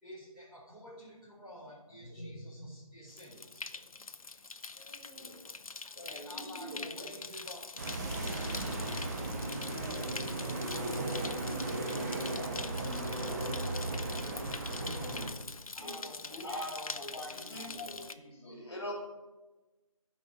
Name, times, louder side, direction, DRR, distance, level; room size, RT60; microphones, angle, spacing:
voice 1, 0.0-3.7 6.0-7.7 8.2-8.6 15.7-18.1, equal, 5° right, -15 dB, 1.8 m, -51 dB
voice 2, 2.0-2.7 4.8-5.4 5.9-7.1 8.9-9.2 9.8-11.9 12.1-15.5, equal, 20° left, -8 dB, 3.0 m, -46 dB
sound 1, 3.1-18.1, left 4 dB, 75° left, 0.6 m, -44 dB
sound 2, 7.8-15.3, right 2 dB, 30° right, 1.3 m, -36 dB
voice 3, 16.3-18.9, left 1 dB, 50° left, -2 dB, 3.4 m, -42 dB
12.5 x 5.5 x 5.0 m, 1.1 s
figure-of-eight pair, 160°, 18 cm